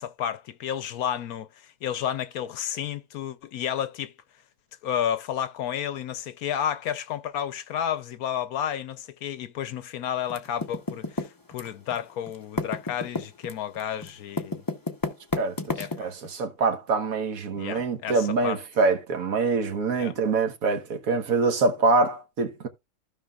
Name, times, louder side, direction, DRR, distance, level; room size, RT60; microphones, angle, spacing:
voice 1, 0.0-1.5 1.8-4.1 4.8-14.6 15.8-16.1 17.5-18.6 20.0-20.1, left 9 dB, 75° left, 1.2 m, -31 dB
Typing, 10.3-12.0 12.3-16.3, left 3 dB, 20° left, 0.6 m, -31 dB
voice 2, 15.4-22.7, right 3 dB, 65° right, 1.5 m, -25 dB
15.5 x 5.5 x 2.3 m
omnidirectional pair, 1.6 m